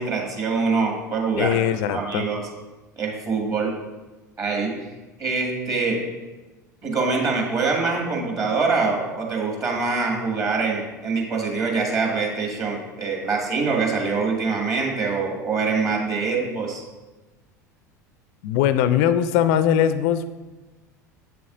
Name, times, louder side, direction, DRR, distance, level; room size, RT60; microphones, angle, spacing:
voice 1, 0.0-1.6 1.8-2.4 3.0-3.7 4.4-4.7 5.2-6.0 6.8-16.8, right 4 dB, 35° right, 0 dB, 1.9 m, -24 dB
voice 2, 1.4-2.3 18.4-20.3, left 10 dB, 55° left, 13 dB, 0.3 m, -21 dB
8.1 x 6.9 x 2.5 m, 1.1 s
figure-of-eight pair, 75°, 10 cm